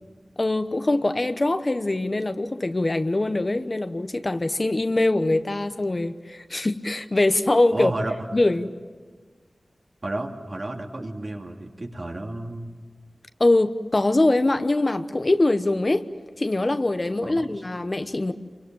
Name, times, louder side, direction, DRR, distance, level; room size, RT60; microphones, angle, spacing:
voice 1, 0.4-7.9 8.3-8.7 13.4-16.0 16.4-18.3, left 2 dB, 40° left, 1.0 m, -23 dB
voice 2, 7.7-8.2 10.0-12.7 17.2-17.5, right 2 dB, 50° right, 2.8 m, -31 dB
27.5 x 24.0 x 7.8 m
wide cardioid pair, 60°, 0 cm